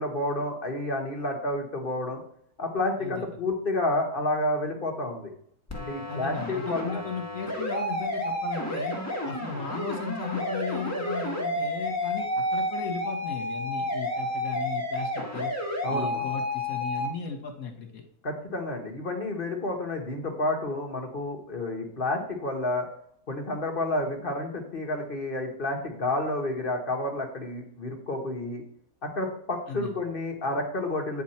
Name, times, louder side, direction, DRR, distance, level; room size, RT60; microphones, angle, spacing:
voice 1, 0.0-2.2 2.6-5.3 5.8-7.0 15.8-16.2 18.2-22.9 23.3-28.6 29.0-31.2, left 2 dB, 35° left, 2 dB, 1.3 m, -30 dB
sound 1, 5.7-17.1, left 1 dB, 10° left, 1.2 m, -31 dB
voice 2, 6.1-9.0 9.2-15.5 15.9-18.0 29.7-30.0, left 6 dB, 60° left, 3 dB, 1.7 m, -36 dB
9.3 x 4.7 x 4.3 m, 0.66 s
omnidirectional pair, 1.8 m